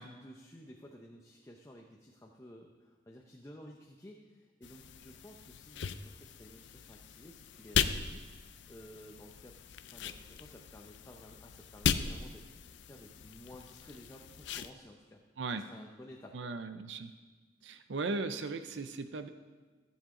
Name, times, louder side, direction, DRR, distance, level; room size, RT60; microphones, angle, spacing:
voice 1, 0.0-12.4 12.8-15.2 15.5-16.5, equal, 15° left, 0 dB, 0.7 m, -54 dB
sound 1, 4.6-14.7, left 7 dB, 80° left, 0.5 m, -38 dB
voice 2, 16.3-17.1 17.6-19.3, right 3 dB, 75° right, 9 dB, 0.5 m, -37 dB
15.0 x 7.3 x 3.8 m, 1.3 s
head